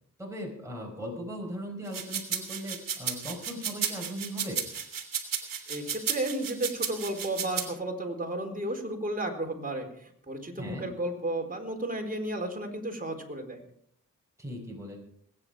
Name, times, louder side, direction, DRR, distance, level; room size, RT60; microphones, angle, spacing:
voice 1, 0.2-4.6 10.6-10.9 14.4-15.0, equal, 10° right, -1 dB, 4.8 m, -38 dB
sound 1, 1.9-7.7, right 7 dB, 75° right, 2.5 m, -33 dB
voice 2, 5.7-13.6, right 1 dB, 25° right, 2 dB, 4.1 m, -33 dB
21.0 x 9.5 x 5.0 m, 0.68 s
cardioid pair, 55°, 33 cm